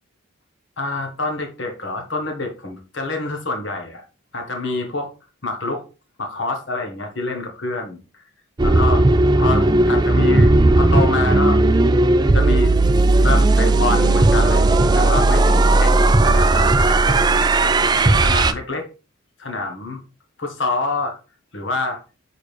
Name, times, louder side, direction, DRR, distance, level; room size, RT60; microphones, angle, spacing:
voice 1, 0.8-4.0 4.3-5.1 5.4-5.8 6.2-8.0 8.6-9.1 9.4-11.6 12.3-12.7 13.1-14.6 14.9-17.2 17.6-18.9 19.4-20.0 20.4-21.2 21.5-22.0, left 3 dB, 60° left, 1.4 m, -27 dB
sound 1, 8.6-18.5, right 2 dB, 20° right, 0.3 m, -15 dB
6.5 x 4.8 x 3.4 m
head